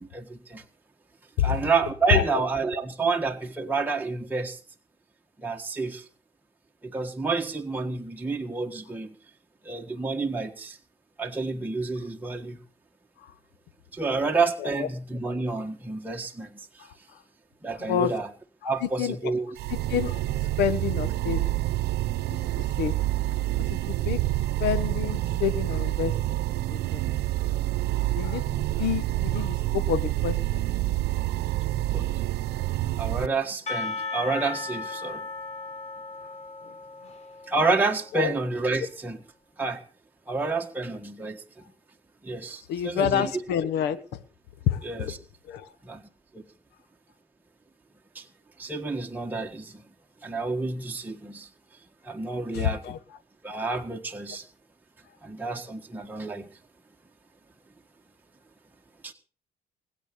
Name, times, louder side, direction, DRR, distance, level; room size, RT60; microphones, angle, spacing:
voice 1, 0.1-0.6 1.4-4.6 5.4-6.0 6.8-9.1 9.6-10.8 11.2-12.6 13.9-16.9 17.6-18.3 18.6-19.5 31.9-32.1 33.0-35.2 37.5-39.2 39.6-39.8 40.3-41.4 42.2-43.3 44.8-45.2 45.8-46.0 46.3-46.4 48.1-48.2 48.6-49.8 50.2-51.5 52.0-52.8 53.4-54.4 55.2-56.4 59.0-59.1, right 3 dB, 10° right, 1 dB, 1.6 m, -29 dB
voice 2, 2.1-2.4 13.2-13.3 14.6-14.9 15.5-15.6 16.8-17.2 17.7-18.1 18.6-19.3 19.7-20.2 20.6-21.5 22.6-22.9 23.7-24.2 24.6-26.4 26.7-27.0 28.1-30.6 37.0-37.1 38.1-38.3 42.7-44.2 44.7-45.1 45.5-45.7 52.5-53.0, left 9 dB, 85° left, 13 dB, 1.3 m, -29 dB
sound 1, 19.6-33.3, right 15 dB, 80° right, 0.8 m, -27 dB
Percussion / Church bell, 33.7-38.4, left 3 dB, 45° left, 3.7 m, -36 dB
20.0 x 8.8 x 6.9 m, 0.39 s
cardioid pair, 110°, 17 cm